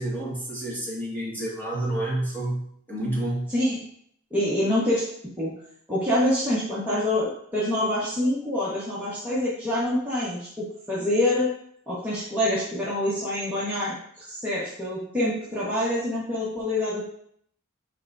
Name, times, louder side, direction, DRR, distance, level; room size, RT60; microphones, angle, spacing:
voice 1, 0.0-3.5, right 1 dB, 10° left, -6 dB, 2.1 m, -29 dB
voice 2, 4.3-5.1 5.4-5.5 5.9-11.5 11.9-17.1, left 1 dB, 10° right, -10 dB, 1.4 m, -26 dB
9.8 x 3.7 x 2.7 m, 0.66 s
head